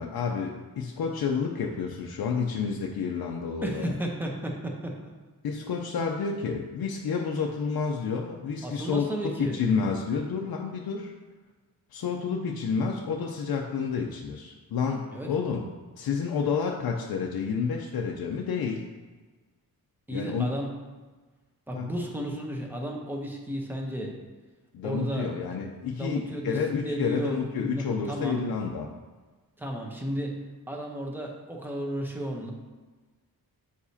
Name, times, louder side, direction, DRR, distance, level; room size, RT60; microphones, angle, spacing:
voice 1, 0.0-4.0 5.4-9.0 9.4-11.1 11.9-15.6 16.0-18.9 20.1-20.5 21.7-21.9 24.7-28.9, left 5 dB, 75° left, 0 dB, 0.6 m, -30 dB
voice 2, 3.6-5.1 8.6-9.6 15.1-15.3 20.1-20.7 21.7-24.2 24.8-25.3 26.0-28.4 29.6-30.4 30.7-32.5, equal, 5° right, 0 dB, 0.8 m, -33 dB
8.0 x 4.9 x 2.8 m, 1.3 s
wide cardioid pair, 145°, 37 cm